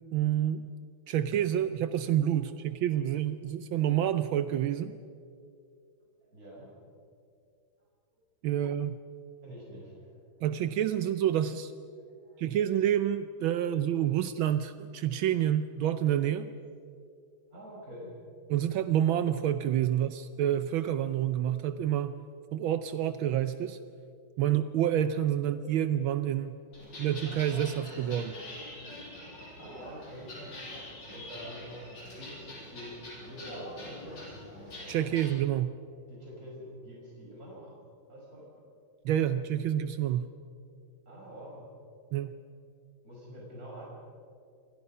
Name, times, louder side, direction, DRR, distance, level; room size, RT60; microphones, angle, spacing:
voice 1, 0.1-0.7 1.1-4.9 8.4-9.0 10.4-11.7 12.4-16.5 18.5-22.1 22.5-23.8 24.4-26.6 27.0-28.3 34.9-35.7 39.0-40.3 42.1-42.3, right 11 dB, 80° right, 11 dB, 1.5 m, -28 dB
voice 2, 6.2-6.8 9.4-10.2 12.1-12.4 17.5-18.1 26.7-27.1 29.6-30.3 30.7-31.7 32.1-34.4 34.8-35.0 36.1-37.8 38.1-38.5 41.1-41.7 43.0-43.8, equal, 45° right, -4 dB, 6.2 m, -47 dB
sound 1, 26.7-35.3, left 1 dB, 60° left, 8.1 m, -44 dB
28.0 x 26.0 x 5.6 m, 2.4 s
omnidirectional pair, 2.2 m